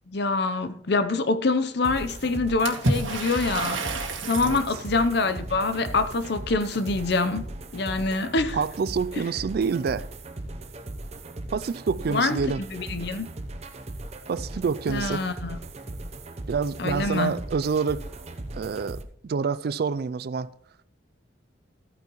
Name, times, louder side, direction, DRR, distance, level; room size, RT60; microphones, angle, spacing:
voice 1, 0.1-3.8 4.3-7.5 7.7-8.6 12.1-13.3 14.9-15.6 16.8-17.4, left 3 dB, 60° left, 0.7 m, -25 dB
sound 1, 1.8-19.0, right 2 dB, 35° right, 0.7 m, -38 dB
Water / Splash splatter, 2.7-4.7, right 2 dB, 90° right, 1.7 m, -29 dB
voice 2, 8.5-10.1 11.5-12.6 14.3-15.3 16.5-18.0 18.5-20.5, right 5 dB, 55° right, 0.3 m, -27 dB
14.0 x 9.2 x 3.0 m
head